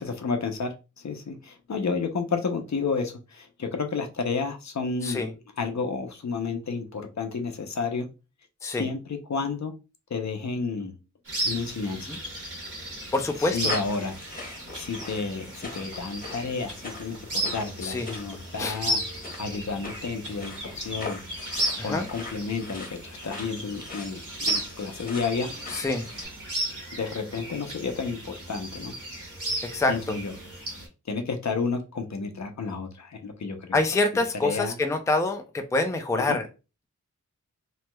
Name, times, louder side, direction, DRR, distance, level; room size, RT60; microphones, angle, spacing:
voice 1, 0.0-5.3 5.6-8.1 8.8-9.7 10.1-11.0 11.4-12.1 13.4-19.0 19.4-21.2 21.7-25.5 26.9-28.9 29.9-30.3 31.1-33.8 34.4-34.7 36.1-36.4, left 4 dB, 60° left, 0.7 m, -31 dB
sound 1, 11.2-30.9, right 1 dB, 75° right, 1.7 m, -35 dB
sound 2, 12.4-26.2, left 2 dB, 30° left, 1.2 m, -42 dB
voice 2, 13.1-13.8 17.8-18.1 18.6-18.8 21.8-22.1 25.7-26.0 29.6-30.2 33.7-36.5, left 2 dB, 10° left, 0.4 m, -26 dB
3.0 x 3.0 x 2.2 m
wide cardioid pair, 75°, 31 cm